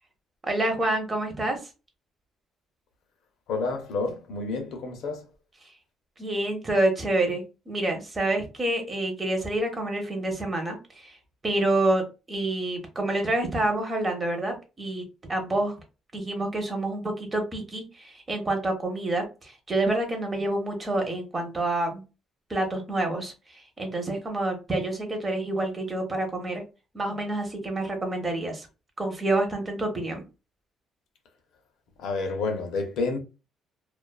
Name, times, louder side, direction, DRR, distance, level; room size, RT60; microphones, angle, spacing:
voice 1, 0.4-1.6 6.2-11.2 11.4-15.0 15.3-15.8 16.1-22.0 22.5-26.6 26.9-28.7 29.0-30.2, right 2 dB, 25° right, 0.8 m, -28 dB
voice 2, 3.5-5.3 32.0-33.2, left 3 dB, 80° left, 0.6 m, -29 dB
2.4 x 2.3 x 2.3 m
cardioid pair, 110°, 0 cm